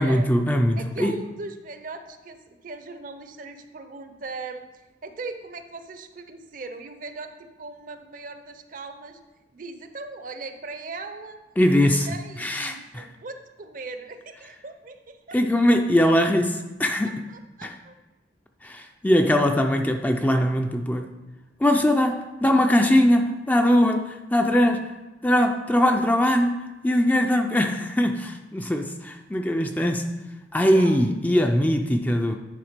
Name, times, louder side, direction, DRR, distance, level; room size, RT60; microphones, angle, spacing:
voice 1, 0.0-1.2 11.6-12.1 12.4-13.0 15.3-17.3 17.6-17.7 18.6-21.1 21.6-24.9 25.2-30.1 30.5-32.4, left 1 dB, 10° left, 4 dB, 0.3 m, -21 dB
voice 2, 0.7-4.6 5.0-9.2 9.5-11.4 11.8-15.4 17.0-17.9 30.7-31.1, right 3 dB, 50° right, 8 dB, 0.6 m, -39 dB
9.8 x 3.6 x 5.1 m, 1.1 s
head